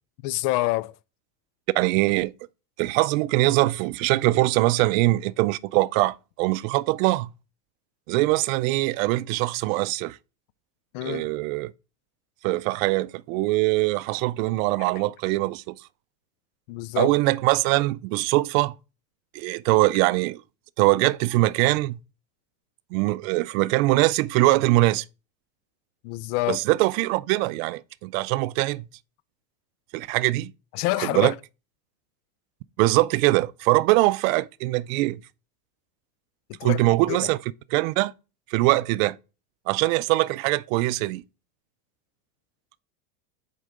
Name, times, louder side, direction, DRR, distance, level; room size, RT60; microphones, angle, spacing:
voice 1, 0.2-0.9 10.9-11.3 16.7-17.1 26.0-26.6 30.7-31.3 36.6-36.8 37.1-37.2, left 18 dB, 65° left, 0.5 m, -26 dB
voice 2, 1.7-2.3 2.8-7.3 8.1-10.2 11.0-11.7 12.4-15.7 17.0-18.7 19.3-20.4 20.8-22.0 22.9-25.0 26.5-28.9 29.9-30.5 31.0-31.3 32.8-35.2 36.6-37.4 37.7-38.1 38.5-39.2 39.7-41.2, right 19 dB, 60° right, 0.5 m, -22 dB
6.3 x 4.7 x 3.7 m
supercardioid pair, 145°, 48 cm